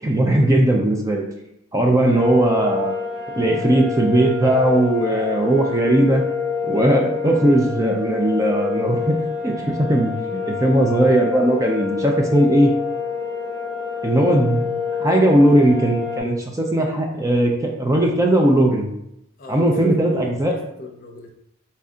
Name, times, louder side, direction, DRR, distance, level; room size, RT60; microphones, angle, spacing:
voice 1, 0.0-1.2 1.7-2.9 3.4-6.2 6.6-9.1 9.4-10.1 10.5-12.7 14.0-14.7 15.0-18.9 19.5-20.5, right 1 dB, 15° right, 1 dB, 0.5 m, -18 dB
sound 1, 2.1-16.2, left 6 dB, 85° right, 0.8 m, -27 dB
voice 2, 19.4-21.3, left 1 dB, 45° left, 1 dB, 0.7 m, -37 dB
4.3 x 2.7 x 3.6 m, 0.81 s
head